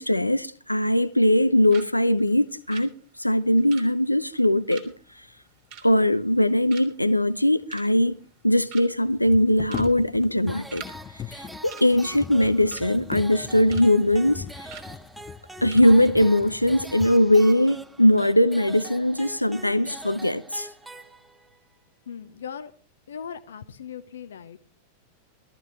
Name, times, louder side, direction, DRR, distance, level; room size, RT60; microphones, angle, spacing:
voice 1, 0.0-2.9 3.2-4.9 5.8-8.2 8.4-10.8 11.3-14.7 15.6-20.7, left 1 dB, 85° left, 0.6 m, -20 dB
sound 1, 0.8-1.4 1.7-1.9 2.2-6.4 6.7-7.1 7.5-8.1 8.4-8.5 8.7-9.1 9.6-9.9 10.2-11.0 11.2-11.4 11.7-12.9 13.3-13.9 14.2-14.3 14.7-14.9 15.3-15.4 15.7-15.9 16.2-16.3, right 8 dB, 50° right, 3.4 m, -45 dB
sound 2, 7.6-7.7 7.9-8.0 9.0-17.4 18.1-18.2 18.7-19.3 19.6-20.2, left 8 dB, 25° left, 0.6 m, -40 dB
sound 3, 10.5-21.6, right 1 dB, 5° right, 1.0 m, -44 dB
voice 2, 22.1-22.7 23.1-24.7, left 7 dB, 65° left, 0.9 m, -39 dB
21.0 x 14.0 x 3.2 m
figure-of-eight pair, 90°, 0 cm